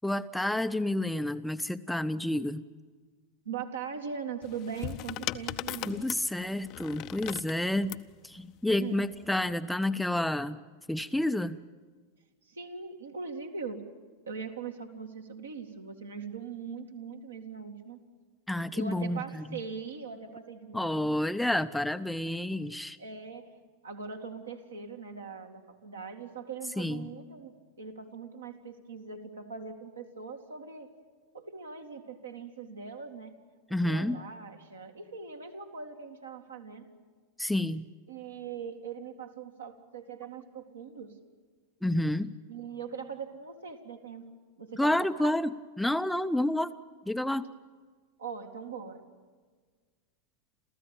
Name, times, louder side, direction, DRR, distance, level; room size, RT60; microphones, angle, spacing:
voice 1, 0.0-2.6 5.9-8.0 8.2-10.6 10.9-11.6 18.5-19.6 20.7-23.0 26.8-27.1 33.7-34.2 37.4-37.9 41.8-42.3 44.8-45.5 45.8-46.7 47.1-47.5, left 1 dB, 5° left, 10 dB, 0.6 m, -29 dB
voice 2, 3.4-6.1 8.7-9.0 12.4-13.8 14.3-18.0 18.7-21.2 23.0-23.5 23.8-30.9 31.3-33.4 33.8-36.9 38.1-41.2 42.5-44.3 44.6-45.4 48.2-49.0, right 5 dB, 70° right, 3 dB, 2.2 m, -41 dB
sound 1, 4.4-8.1 9.1-9.5, left 16 dB, 40° left, 0.7 m, -38 dB
30.0 x 14.5 x 9.0 m, 1.5 s
figure-of-eight pair, 90°, 0 cm